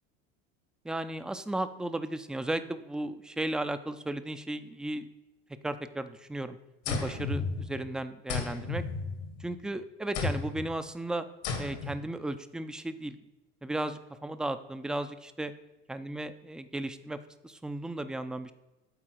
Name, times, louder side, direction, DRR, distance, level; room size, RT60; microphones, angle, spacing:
voice 1, 0.8-5.1 5.6-6.6 6.9-8.8 9.4-11.3 11.6-13.2 13.6-15.5 15.9-17.2 17.4-18.5, right 1 dB, ahead, 11 dB, 0.3 m, -35 dB
sound 1, 6.9-7.9 8.3-9.6 10.1-10.7 11.4-12.1, left 4 dB, 75° left, 1.4 m, -33 dB
8.7 x 4.1 x 4.5 m, 1.0 s
hypercardioid pair, 80°, 32 cm